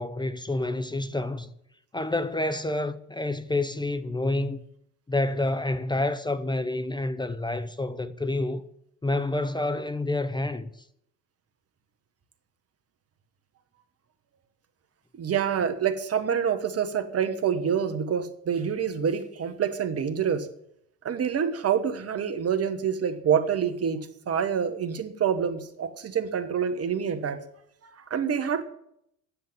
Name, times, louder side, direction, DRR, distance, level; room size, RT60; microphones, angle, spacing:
voice 1, 0.0-1.5 1.9-4.6 5.1-8.6 9.0-10.7, left 2 dB, 10° left, 0.7 m, -28 dB
voice 2, 15.1-20.5 21.0-27.4 27.8-28.6, right 7 dB, 35° right, 1.5 m, -27 dB
10.0 x 7.6 x 8.9 m
hypercardioid pair, 80°, 44 cm